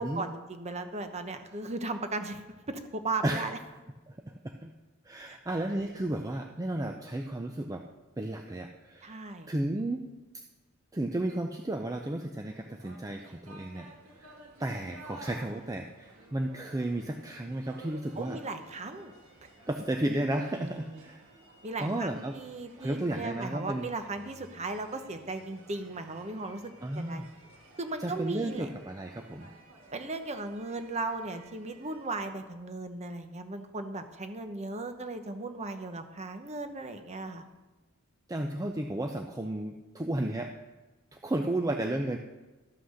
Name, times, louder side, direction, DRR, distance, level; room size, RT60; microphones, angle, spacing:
voice 1, 0.0-3.6 5.3-5.4 9.0-9.5 18.2-19.1 19.4-19.5 20.5-21.1 21.6-27.2 27.8-28.7 29.9-37.4, right 3 dB, 30° right, 7 dB, 0.9 m, -37 dB
voice 2, 4.1-4.7 5.0-7.8 8.2-9.2 9.5-10.0 10.9-13.9 14.2-14.3 14.6-18.4 19.7-21.2 21.8-22.3 22.8-23.9 26.8-27.3 28.0-29.5 38.3-40.5 41.1-42.2, right 1 dB, 15° right, 4 dB, 0.5 m, -33 dB
sound 1, 12.5-32.3, right 2 dB, 85° right, 2.1 m, -54 dB
13.0 x 5.9 x 6.5 m, 1.2 s
head